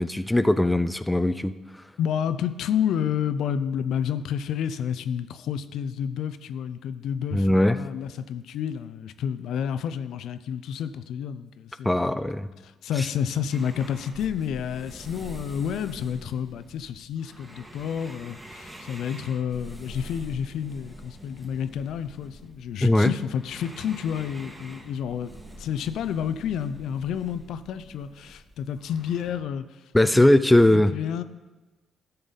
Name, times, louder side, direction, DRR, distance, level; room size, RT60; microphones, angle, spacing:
voice 1, 0.0-1.5 7.3-7.8 11.8-12.5 22.8-23.1 29.9-30.9, left 1 dB, 10° left, 12 dB, 0.4 m, -20 dB
voice 2, 2.0-12.0 12.6-29.8 30.7-31.2, left 8 dB, 80° left, 12 dB, 0.4 m, -30 dB
sound 1, 13.5-29.4, right 1 dB, 15° right, 1.7 m, -45 dB
12.5 x 6.7 x 4.0 m, 1.2 s
cardioid pair, 90°, 0 cm